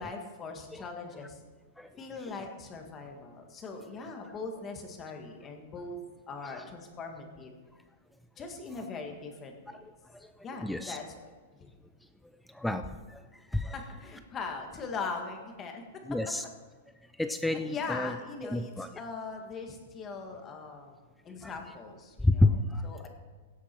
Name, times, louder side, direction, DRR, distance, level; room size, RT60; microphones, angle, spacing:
voice 1, 0.0-1.4 2.0-6.0 6.3-7.5 8.4-9.8 10.4-11.3 13.7-16.3 17.6-20.9 21.2-22.4 22.8-23.1, left 4 dB, 20° left, 4 dB, 1.7 m, -40 dB
voice 2, 10.1-11.0 12.5-13.2 13.5-13.8 16.1-16.4 17.2-18.1 18.4-18.9 21.4-21.5 22.2-22.9, left 2 dB, 5° left, 9 dB, 0.4 m, -30 dB
16.5 x 8.3 x 4.5 m, 1.4 s
supercardioid pair, 155°, 0 cm